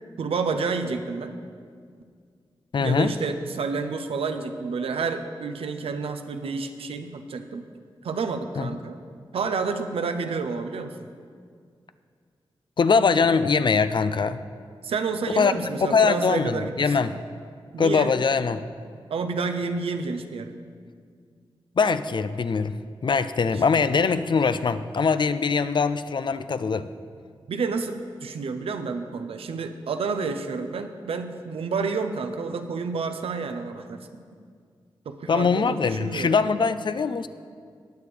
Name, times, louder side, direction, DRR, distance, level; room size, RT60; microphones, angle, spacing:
voice 1, 0.2-1.4 2.8-7.6 8.0-9.0 9.3-11.1 14.8-17.2 17.7-18.2 19.1-20.6 23.5-23.6 27.5-34.1 35.1-36.4, right 4 dB, 90° right, 7 dB, 0.6 m, -29 dB
voice 2, 2.7-3.1 8.6-8.7 12.8-14.4 15.4-17.2 17.8-18.7 21.8-22.7 23.0-26.8 35.3-37.3, left 5 dB, 55° left, 12 dB, 0.5 m, -22 dB
18.5 x 6.9 x 3.3 m, 2.1 s
cardioid pair, 60°, 10 cm